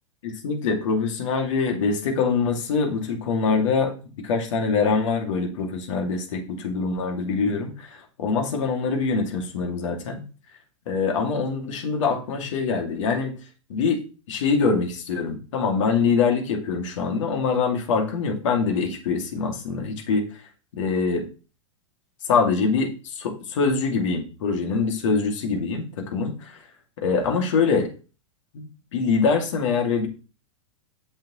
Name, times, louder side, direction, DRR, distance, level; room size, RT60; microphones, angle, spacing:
voice 1, 0.2-3.9 4.2-10.2 10.9-13.4 13.7-20.3 20.8-21.3 22.3-26.6 27.0-27.9 28.5-30.1, left 5 dB, 70° left, 3 dB, 2.7 m, -24 dB
8.9 x 7.2 x 3.2 m, 0.34 s
hypercardioid pair, 110°, 17 cm